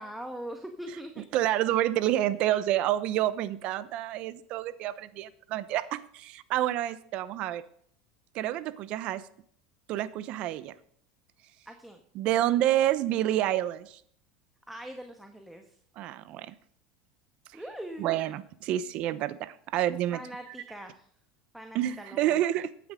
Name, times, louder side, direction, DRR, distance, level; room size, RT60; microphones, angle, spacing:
voice 1, 0.0-1.2 11.6-12.0 14.7-15.8 17.5-18.2 20.1-21.1 21.5-22.4, right 1 dB, 5° right, 5 dB, 1.5 m, -42 dB
voice 2, 1.3-7.6 8.3-9.2 9.9-10.7 12.1-14.0 16.0-16.5 18.0-20.2 21.7-22.7, right 13 dB, 55° right, 15 dB, 0.9 m, -28 dB
14.5 x 9.8 x 3.8 m, 0.63 s
supercardioid pair, 100°, 2 cm